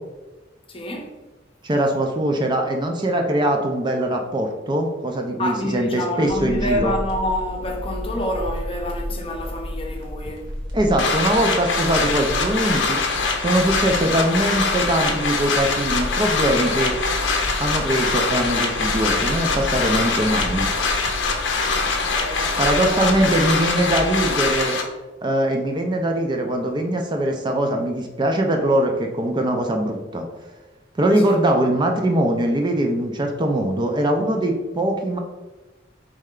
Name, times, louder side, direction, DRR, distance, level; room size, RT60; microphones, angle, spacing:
voice 1, 0.7-1.1 5.4-10.5 21.9-23.3 31.2-31.4, left 1 dB, 30° left, 0.7 m, -28 dB
voice 2, 1.6-6.9 10.7-13.0 13.4-17.0 17.6-20.7 22.6-24.8 25.2-30.3 31.0-35.2, right 1 dB, 25° right, 0.4 m, -22 dB
sound 1, 6.3-24.6, equal, 85° right, 1.3 m, -33 dB
sound 2, 11.0-24.8, left 4 dB, 75° left, 0.6 m, -23 dB
4.2 x 3.2 x 3.7 m
head